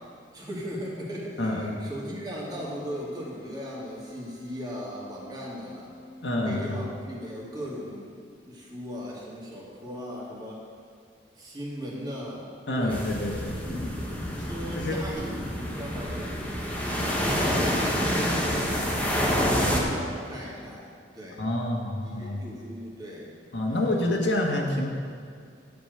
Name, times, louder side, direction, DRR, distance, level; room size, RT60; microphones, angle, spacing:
voice 1, 0.3-5.9 6.4-10.6 11.4-12.5 12.8-13.0 13.6-14.1 14.4-18.8 19.2-20.9 21.1-21.4 22.0-23.3 23.6-24.1, equal, 25° right, -6 dB, 2.4 m, -38 dB
voice 2, 1.4-1.8 6.2-6.9 12.7-13.9 14.2-14.5 14.7-15.0 21.4-22.5 23.5-24.9, left 1 dB, 75° left, -1 dB, 1.4 m, -28 dB
Wind instrument woodwind instrument, 2.5-7.9, equal, 55° left, 1.8 m, -48 dB
sound 1, 12.9-19.8, equal, 10° left, 1.4 m, -28 dB
10.5 x 5.1 x 7.9 m, 2.3 s
head